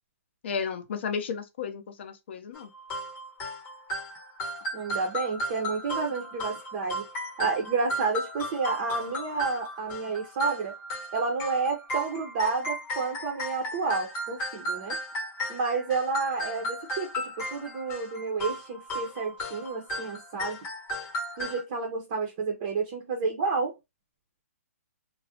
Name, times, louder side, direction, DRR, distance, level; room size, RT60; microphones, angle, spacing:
voice 1, 0.4-2.7, left 6 dB, 50° left, 0.6 m, -33 dB
sound 1, 2.5-21.6, equal, 20° left, 0.9 m, -35 dB
voice 2, 4.7-7.1 7.4-10.7 11.1-15.0 15.5-20.6 21.4-23.7, right 4 dB, 30° right, 0.6 m, -30 dB
2.3 x 2.0 x 2.7 m
hypercardioid pair, 160°, 8 cm